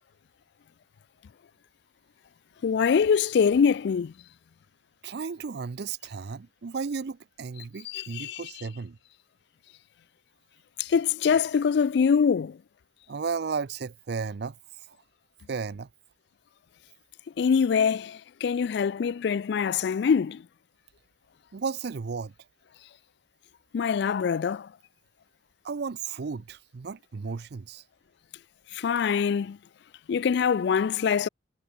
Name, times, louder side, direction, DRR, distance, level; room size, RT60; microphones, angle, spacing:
voice 1, 2.6-4.1 7.9-8.4 10.9-12.5 17.4-20.4 23.7-24.7 28.8-29.6 30.1-31.3, left 6 dB, 60° left, 0.3 m, -24 dB
voice 2, 5.0-9.0 13.1-14.6 14.9-15.0 15.5-15.9 21.5-22.3 25.6-27.8, right 5 dB, 60° right, 0.5 m, -34 dB
head